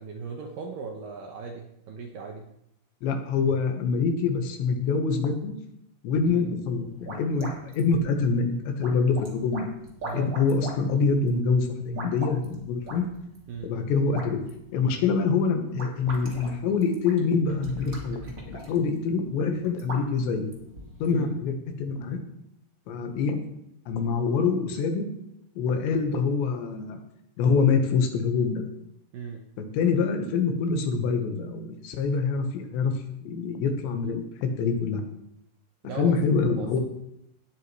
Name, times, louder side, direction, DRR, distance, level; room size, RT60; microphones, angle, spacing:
voice 1, 0.0-2.5 6.3-6.4 10.0-10.3 13.5-13.7 21.1-21.3 29.1-29.4 35.8-36.1 36.6-36.8, right 5 dB, 75° right, 2 dB, 2.1 m, -37 dB
voice 2, 3.0-5.6 6.0-9.7 10.1-13.1 13.6-14.4 14.7-18.2 18.5-20.5 21.0-22.2 22.9-23.4 23.9-25.1 25.6-27.0 27.4-28.6 29.6-32.9 33.3-35.0 36.0-36.8, left 5 dB, 90° left, 4 dB, 3.6 m, -25 dB
sound 1, 6.6-21.2, right 1 dB, 30° right, 1.5 m, -43 dB
18.0 x 8.1 x 3.2 m, 0.77 s
omnidirectional pair, 5.0 m